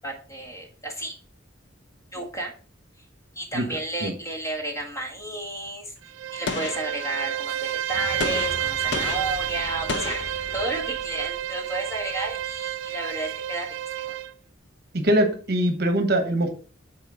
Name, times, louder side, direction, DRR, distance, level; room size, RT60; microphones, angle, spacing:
voice 1, 0.0-1.1 2.1-2.5 3.3-5.9 6.3-13.7, right 2 dB, 15° left, 0 dB, 1.6 m, -32 dB
Bowed string instrument, 6.0-14.3, right 11 dB, 80° right, 0.4 m, -30 dB
Gunshot gunfire, 6.5-7.5 8.2-11.0, left 5 dB, 60° left, 0.6 m, -33 dB
Fire / Explosion, 7.4-13.3, equal, 30° left, 3.3 m, -43 dB
voice 2, 14.9-16.5, right 1 dB, 55° right, 6 dB, 1.1 m, -22 dB
9.0 x 4.1 x 3.8 m, 0.40 s
head